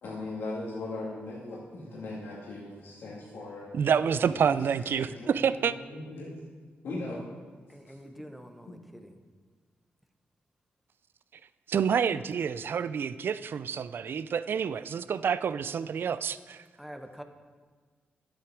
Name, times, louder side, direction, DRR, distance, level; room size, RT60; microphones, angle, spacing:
voice 1, 0.0-3.8 4.1-4.4 5.0-6.3 6.8-7.3, left 2 dB, 75° left, -6 dB, 2.0 m, -39 dB
voice 2, 3.7-5.7 11.7-16.6, right 7 dB, 65° right, 15 dB, 0.4 m, -28 dB
voice 3, 7.7-9.2 16.7-17.2, equal, ahead, 6 dB, 1.1 m, -46 dB
10.0 x 7.9 x 4.8 m, 1.5 s
cardioid pair, 65°, 4 cm